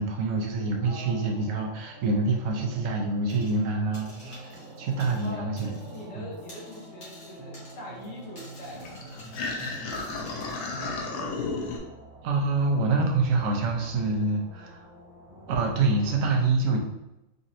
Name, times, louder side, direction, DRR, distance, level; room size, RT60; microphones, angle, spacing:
voice 1, 0.0-4.4 4.8-5.7 6.1-6.2 12.2-14.8 15.5-16.8, right 3 dB, 75° right, 1 dB, 0.7 m, -26 dB
sound 1, 0.6-16.2, right 2 dB, 50° right, 1.1 m, -46 dB
voice 2, 0.8-1.4 5.2-10.0, left 1 dB, 70° left, -5 dB, 1.5 m, -43 dB
sound 2, 3.3-3.7 3.9-6.1 6.3-10.8, left 1 dB, 50° left, 1.6 m, -51 dB
sound 3, 8.7-11.8, left 3 dB, 90° left, 1.4 m, -33 dB
4.0 x 2.7 x 2.5 m, 0.93 s
omnidirectional pair, 2.1 m